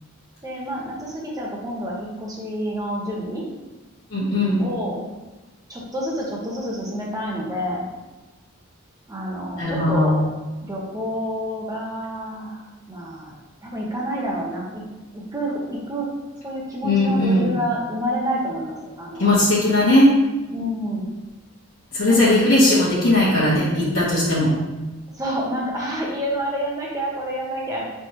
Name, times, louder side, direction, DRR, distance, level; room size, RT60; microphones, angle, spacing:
voice 1, 0.4-3.4 4.6-5.0 5.7-7.9 9.1-10.3 10.6-12.6 12.9-13.3 13.6-14.8 15.1-16.1 16.4-19.3 20.5-21.0 22.1-22.7 25.2-27.8, equal, 15° right, -4 dB, 0.8 m, -28 dB
voice 2, 4.1-4.6 9.6-10.1 16.8-17.5 19.2-20.1 21.9-24.5, left 1 dB, 65° left, -10 dB, 1.1 m, -18 dB
4.3 x 3.4 x 3.0 m, 1.1 s
head